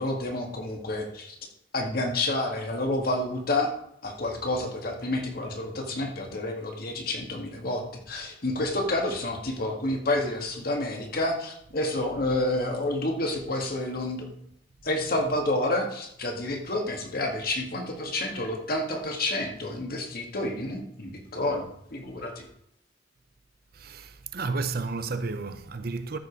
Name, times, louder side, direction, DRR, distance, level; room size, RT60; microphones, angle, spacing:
voice 1, 0.0-1.4 1.7-3.7 4.0-14.3 14.8-22.5, left 1 dB, 55° left, 2.0 m, -29 dB
voice 2, 23.7-26.2, right 4 dB, 55° right, 0.7 m, -32 dB
13.5 x 5.3 x 5.3 m
head